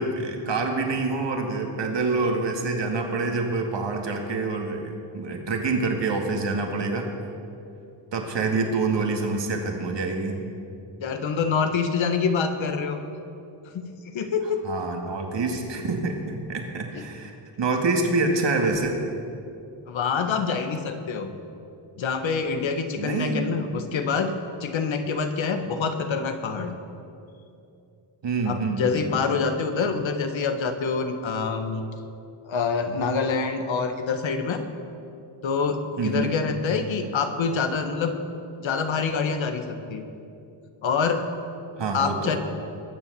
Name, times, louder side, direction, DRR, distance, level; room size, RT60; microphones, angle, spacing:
voice 1, 0.0-7.1 8.1-10.4 14.6-19.0 22.9-23.7 28.2-29.2 36.0-36.3 41.8-42.4, right 3 dB, 60° right, 2 dB, 2.3 m, -26 dB
voice 2, 11.0-13.0 13.7-14.7 16.9-17.0 19.9-21.3 22.0-26.7 28.4-31.8 32.5-34.6 35.4-38.2 38.6-40.0 40.8-41.3 41.9-42.4, left 5 dB, 65° left, 7 dB, 1.6 m, -26 dB
21.0 x 7.3 x 7.0 m, 2.6 s
cardioid pair, 70°, 49 cm